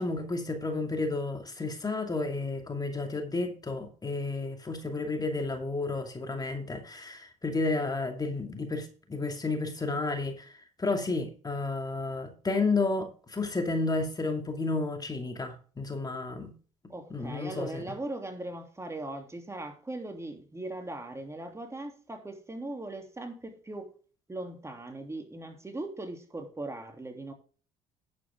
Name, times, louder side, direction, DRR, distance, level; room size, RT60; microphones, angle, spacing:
voice 1, 0.0-10.5 10.8-16.5 17.1-17.8, left 3 dB, 25° left, 2.4 m, -31 dB
voice 2, 16.9-23.9 24.3-27.3, right 2 dB, 20° right, 3.1 m, -39 dB
11.0 x 8.8 x 3.7 m
hypercardioid pair, 65°, 16 cm